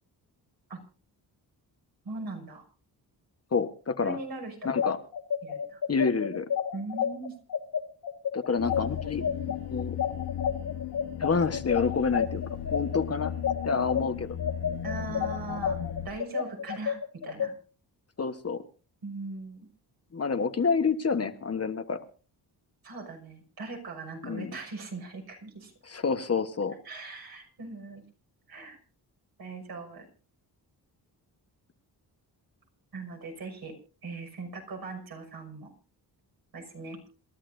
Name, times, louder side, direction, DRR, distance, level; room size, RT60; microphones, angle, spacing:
voice 1, 2.0-2.6 4.0-4.8 5.4-5.8 6.7-7.3 9.5-9.6 14.8-17.5 19.0-19.7 22.8-25.7 26.8-28.0 28.5-28.8 29.4-30.1 32.9-35.7 36.5-37.0, right 3 dB, 65° right, 2 dB, 6.0 m, -40 dB
voice 2, 3.5-4.2 4.6-5.0 5.9-6.5 8.3-9.3 9.7-9.9 11.2-12.4 12.7-13.3 13.6-14.4 18.2-18.6 20.1-22.0 24.2-24.5 25.8-26.7, left 5 dB, 35° left, 8 dB, 1.3 m, -28 dB
sound 1, 4.6-14.0 14.4-17.5, left 8 dB, 55° left, 2.4 m, -30 dB
sound 2, 8.6-16.1, left 10 dB, 80° left, 1.1 m, -36 dB
27.5 x 12.5 x 2.7 m, 0.37 s
cardioid pair, 100°, 40 cm